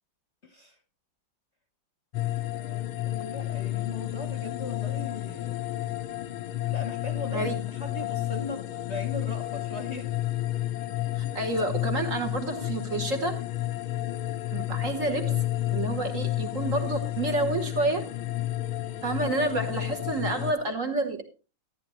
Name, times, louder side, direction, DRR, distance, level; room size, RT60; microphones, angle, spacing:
voice 1, 0.4-0.8 2.5-5.6 6.7-10.1, left 3 dB, 40° left, 1.1 m, -39 dB
sound 1, 2.1-20.5, left 15 dB, 90° left, 1.6 m, -31 dB
voice 2, 11.2-13.4 14.5-15.4 15.7-18.1 19.0-21.2, right 2 dB, 45° right, 1.6 m, -29 dB
14.0 x 9.6 x 3.1 m
omnidirectional pair, 2.2 m